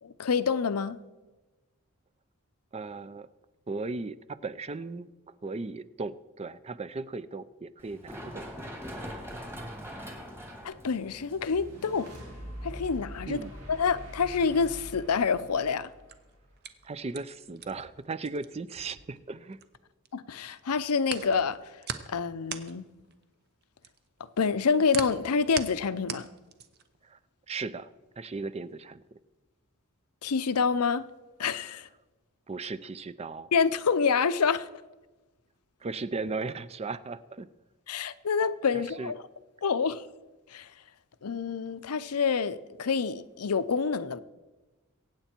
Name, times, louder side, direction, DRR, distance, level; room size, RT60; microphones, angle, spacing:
voice 1, 0.0-1.0 10.6-12.1 12.6-13.4 13.7-15.9 20.1-21.6 22.1-22.9 24.4-26.3 30.2-31.1 31.4-31.9 33.5-34.7 37.9-39.2 39.6-40.0 40.5-40.7 41.2-44.2, left 5 dB, 85° left, 0.6 m, -27 dB
voice 2, 2.7-3.3 3.7-8.4 13.3-13.5 16.8-19.6 27.0-27.2 27.5-27.9 28.2-29.0 32.5-33.5 35.8-37.5 38.7-39.1, right 3 dB, 30° right, 0.4 m, -37 dB
Run, 7.8-15.3, equal, 10° right, 2.0 m, -44 dB
sound 1, 11.4-16.8, equal, 90° right, 3.7 m, -45 dB
sound 2, 15.9-20.1 20.4-27.0, right 7 dB, 45° right, 0.8 m, -40 dB
22.5 x 9.0 x 4.4 m
head